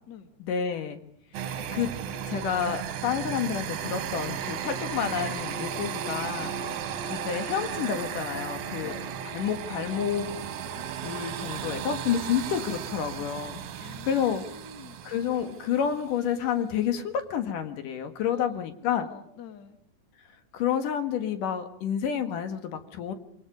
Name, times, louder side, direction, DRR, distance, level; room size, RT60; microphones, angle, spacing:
voice 1, 0.4-1.0 1.7-1.9 2.3-8.9 9.3-10.3 10.7-14.4 15.0-19.1 20.5-23.1, left 8 dB, 80° left, 8 dB, 3.3 m, -29 dB
sound 1, 1.3-16.1, right 8 dB, 65° right, 2.6 m, -35 dB
voice 2, 8.8-9.1 13.8-15.0 18.3-18.6 18.8-19.8, left 5 dB, 40° left, 8 dB, 2.1 m, -47 dB
28.0 x 22.0 x 5.3 m, 0.64 s
omnidirectional pair, 3.7 m